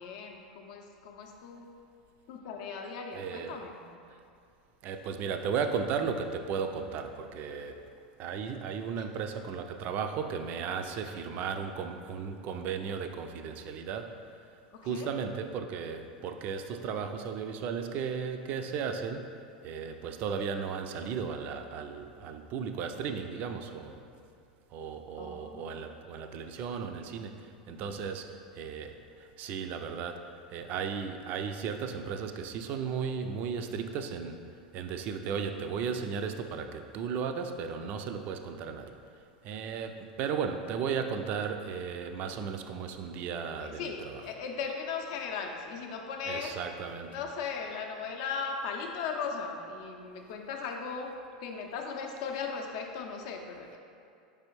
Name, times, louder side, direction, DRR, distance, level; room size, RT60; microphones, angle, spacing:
voice 1, 0.0-1.7 2.3-3.8 9.0-9.1 14.7-15.2 25.2-25.8 41.0-41.3 43.6-46.5 47.1-51.1 51.4-53.8, left 5 dB, 60° left, 3 dB, 0.5 m, -38 dB
voice 2, 3.1-3.6 4.8-7.8 8.2-14.2 14.8-24.0 24.7-34.5 34.7-38.9 39.4-44.2 46.3-47.1, right 6 dB, 45° right, 7 dB, 0.3 m, -35 dB
4.8 x 3.4 x 3.0 m, 2.5 s
hypercardioid pair, 85°, 4 cm